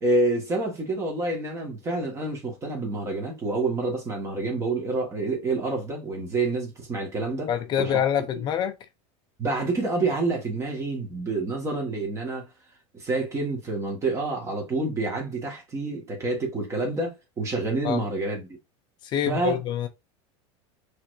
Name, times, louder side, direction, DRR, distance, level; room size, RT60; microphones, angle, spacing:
voice 1, 0.0-7.5 7.8-8.0 9.4-12.5 12.9-18.5 19.3-19.6, right 2 dB, 20° right, 1.7 m, -28 dB
voice 2, 7.5-8.8 17.8-18.0 19.0-19.9, left 9 dB, 30° left, 0.6 m, -26 dB
5.7 x 3.4 x 2.6 m
supercardioid pair, 155°, 15 cm